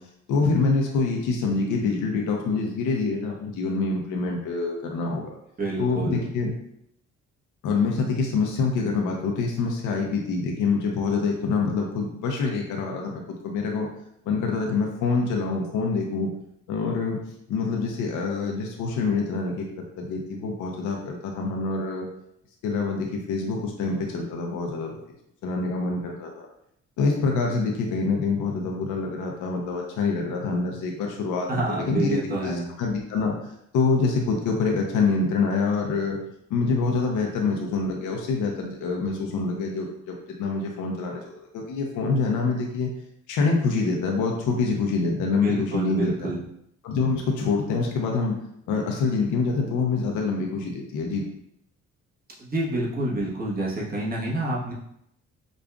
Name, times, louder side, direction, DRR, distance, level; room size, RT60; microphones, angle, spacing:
voice 1, 0.3-5.3 5.8-6.5 7.6-13.9 14.3-16.3 16.7-17.2 17.5-19.6 20.0-22.1 22.6-25.0 25.4-26.5 27.0-36.2 36.5-41.2 41.5-42.9 43.3-46.3 46.8-48.3 48.7-51.2, left 4 dB, 80° left, 0 dB, 0.7 m, -26 dB
voice 2, 5.6-6.2 31.5-32.7 45.4-46.4 52.4-54.7, right 2 dB, 30° right, -4 dB, 1.1 m, -28 dB
5.0 x 2.4 x 2.3 m, 0.75 s
cardioid pair, 90°, 30 cm